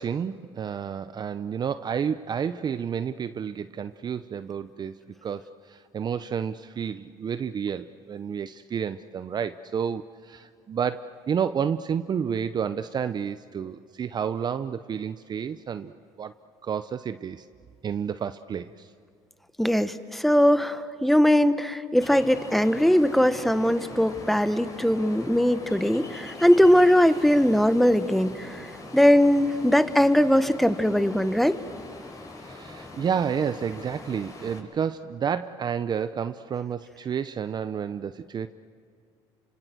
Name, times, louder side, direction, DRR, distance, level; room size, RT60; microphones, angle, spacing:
voice 1, 0.0-16.3 16.6-17.5 17.8-18.9 32.4-38.5, right 7 dB, 40° right, 12 dB, 0.6 m, -30 dB
voice 2, 19.6-28.7 28.9-31.6, equal, ahead, 12 dB, 1.2 m, -20 dB
Ocean, 22.0-34.6, left 2 dB, 30° left, 5.7 m, -42 dB
29.5 x 26.0 x 7.7 m, 2.4 s
cardioid pair, 95°, 11 cm